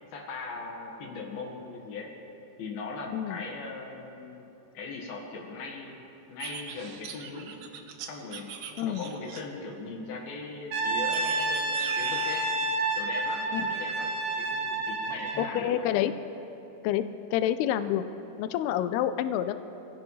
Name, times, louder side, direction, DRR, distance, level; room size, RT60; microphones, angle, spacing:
voice 1, 0.1-2.1 2.6-4.5 4.7-7.6 8.1-8.5 8.8-12.5 13.0-15.9, left 3 dB, 70° left, 0 dB, 3.5 m, -39 dB
sound 1, 6.4-9.7 11.1-12.6, right 7 dB, 80° right, 1.6 m, -41 dB
Brass instrument, 10.7-15.5, right 2 dB, 60° right, 2.3 m, -29 dB
voice 2, 15.4-16.1 16.8-17.0 17.3-18.0 18.4-19.5, left 11 dB, 85° left, 10 dB, 2.6 m, -27 dB
26.0 x 16.5 x 3.2 m, 3.0 s
omnidirectional pair, 4.5 m